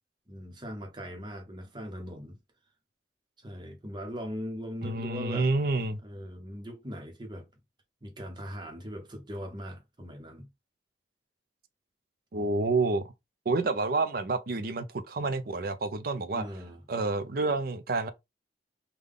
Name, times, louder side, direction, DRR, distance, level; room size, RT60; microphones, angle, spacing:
voice 1, 0.3-2.4 3.4-5.5 6.0-7.5 8.0-10.5 16.3-16.8, equal, 25° right, 0.8 m, -40 dB
voice 2, 4.8-6.0 12.3-13.1 13.5-16.4 16.9-18.1, right 3 dB, 55° right, 0.5 m, -29 dB
3.7 x 2.2 x 3.3 m
head